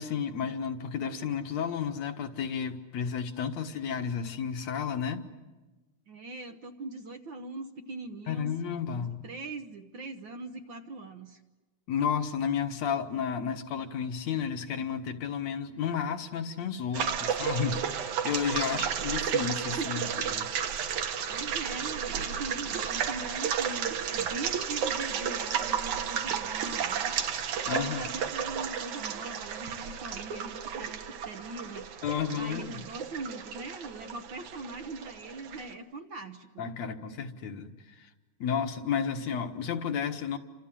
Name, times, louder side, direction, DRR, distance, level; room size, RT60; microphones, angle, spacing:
voice 1, 0.0-5.3 8.3-9.2 11.9-20.4 27.7-28.1 32.0-32.8 36.6-37.7 38.0-38.1 38.4-40.4, left 7 dB, 65° left, 7 dB, 2.6 m, -32 dB
voice 2, 6.1-8.5 8.9-11.4 18.6-19.3 19.8-20.3 20.7-32.0 32.3-36.7, right 2 dB, 60° right, 8 dB, 1.3 m, -41 dB
sound 1, 16.9-35.7, right 8 dB, 75° right, 2.8 m, -33 dB
29.5 x 26.5 x 7.7 m, 1.2 s
omnidirectional pair, 3.5 m